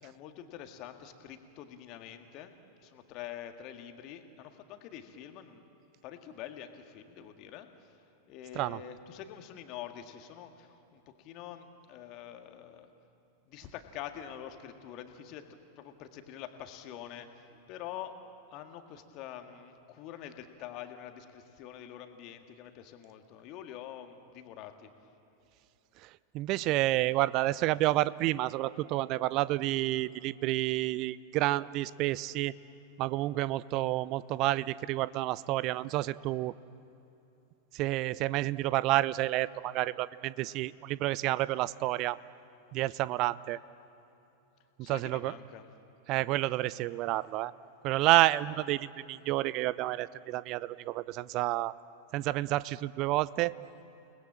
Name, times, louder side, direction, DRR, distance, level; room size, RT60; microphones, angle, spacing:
voice 1, 0.0-5.7 6.0-7.9 8.3-12.9 13.5-18.2 18.5-24.9 44.8-45.7, left 10 dB, 40° left, 6 dB, 1.9 m, -46 dB
voice 2, 26.3-32.5 33.0-36.5 37.7-42.2 42.7-43.6 44.8-45.3 46.1-47.5 47.8-51.7 52.1-53.5, right 17 dB, 40° right, 19 dB, 0.5 m, -29 dB
29.5 x 19.5 x 7.6 m, 2.9 s
figure-of-eight pair, 90°, 0 cm